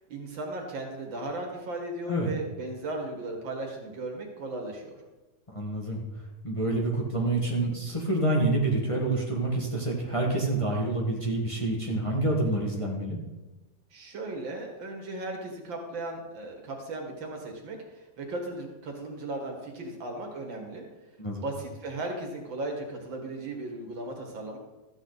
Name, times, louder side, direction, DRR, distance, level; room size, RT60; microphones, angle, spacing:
voice 1, 0.1-5.0 13.9-20.8 21.3-24.6, right 2 dB, 80° right, 1 dB, 2.5 m, -36 dB
voice 2, 5.5-6.0 6.4-13.2 21.2-21.4, right 2 dB, 15° left, -2 dB, 1.6 m, -27 dB
13.5 x 8.7 x 4.1 m, 1.1 s
omnidirectional pair, 2.0 m